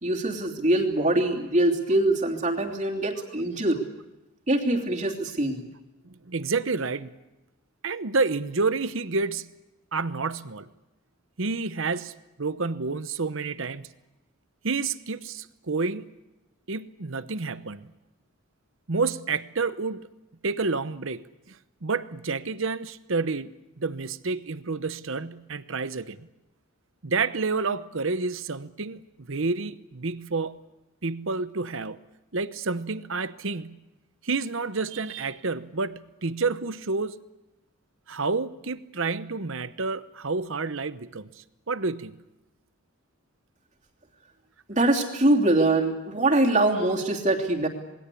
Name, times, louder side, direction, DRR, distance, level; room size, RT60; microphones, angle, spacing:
voice 1, 0.0-3.9 4.5-5.6 44.7-47.7, right 2 dB, 35° right, 3.0 m, -23 dB
voice 2, 6.0-7.1 7.8-9.5 9.9-10.7 11.4-12.1 12.4-13.9 14.6-16.1 16.7-17.9 18.9-20.1 20.4-26.3 27.0-30.6 31.0-32.0 32.3-33.8 34.2-37.2 38.1-42.2, right 4 dB, 60° right, 0.9 m, -29 dB
27.0 x 21.0 x 8.5 m
head